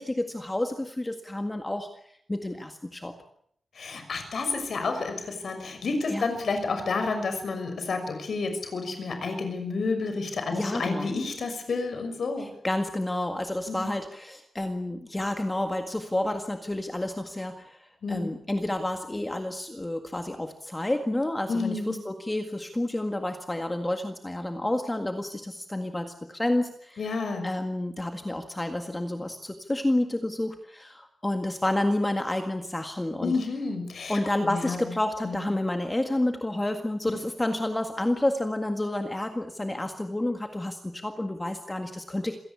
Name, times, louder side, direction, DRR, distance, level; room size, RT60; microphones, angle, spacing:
voice 1, 0.0-1.9 2.3-3.2 6.1-6.3 10.5-11.1 12.4-27.0 27.4-33.4 34.1-42.4, left 1 dB, 15° left, 6 dB, 1.8 m, -30 dB
voice 2, 3.8-12.5 13.7-13.9 18.0-18.3 21.5-22.0 27.0-27.5 33.2-34.9 35.2-35.5, left 4 dB, 65° left, 7 dB, 6.1 m, -30 dB
27.0 x 17.5 x 8.5 m, 0.68 s
wide cardioid pair, 150°, 0 cm